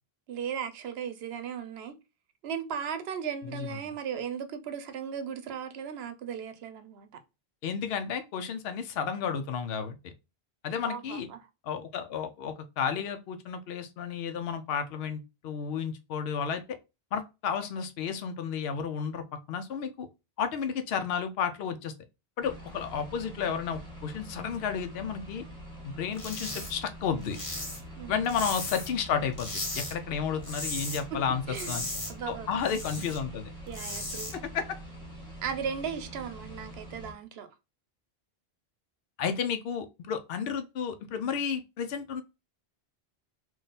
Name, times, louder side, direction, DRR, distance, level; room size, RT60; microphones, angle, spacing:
voice 1, 0.3-2.0 2.4-7.1 10.7-11.5 28.0-28.3 31.1-31.2 31.5-31.8 32.1-32.6 33.7-34.3 35.4-37.5, right 7 dB, 75° right, 0.9 m, -36 dB
voice 2, 7.6-10.1 10.6-11.3 11.6-16.8 17.1-20.1 20.4-21.9 22.4-25.4 25.8-27.4 28.1-31.9 32.3-33.5 34.5-34.8 39.2-42.2, left 7 dB, 70° left, 0.8 m, -32 dB
sound 1, 22.4-37.1, right 1 dB, 5° left, 1.3 m, -45 dB
sound 2, 26.1-26.7 27.0-29.0 29.3-29.9 30.3-31.0 31.3-33.2 33.6-34.3, left 1 dB, 30° left, 1.3 m, -36 dB
3.7 x 2.4 x 3.9 m
omnidirectional pair, 1.1 m